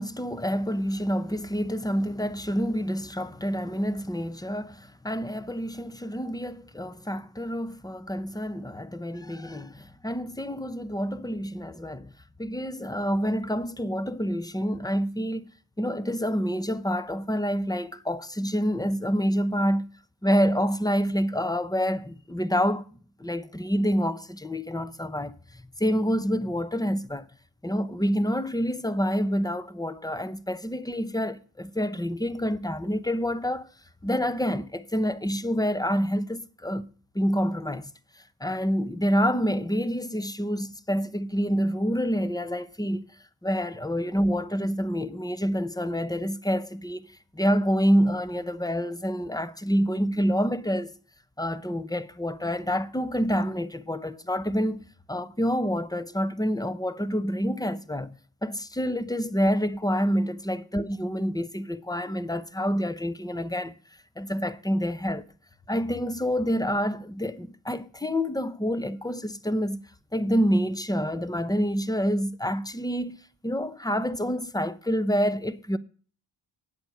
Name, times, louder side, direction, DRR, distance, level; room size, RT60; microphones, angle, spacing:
voice 1, 0.0-12.1 12.4-15.5 15.8-19.9 20.2-22.8 23.2-27.2 27.6-33.7 34.0-36.8 37.1-37.9 38.4-43.1 43.4-47.1 47.3-50.9 51.4-58.1 58.4-63.7 64.2-65.3 65.7-69.8 70.1-73.2 73.4-75.8, equal, 10° left, 0.9 m, -27 dB
9.4 x 7.9 x 6.5 m
cardioid pair, 50°, 48 cm